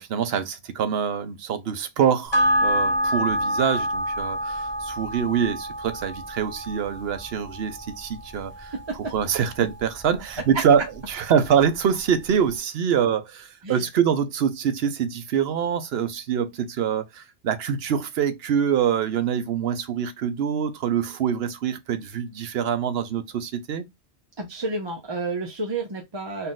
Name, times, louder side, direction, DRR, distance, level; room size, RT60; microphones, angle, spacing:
voice 1, 0.0-8.7 9.1-23.8, right 8 dB, 65° right, 0.9 m, -25 dB
sound 1, 2.3-11.1 11.4-11.5, equal, 25° left, 1.2 m, -28 dB
voice 2, 8.7-9.1 13.6-13.8 24.4-26.5, right 3 dB, 30° right, 0.6 m, -31 dB
4.1 x 2.5 x 3.8 m
omnidirectional pair, 1.2 m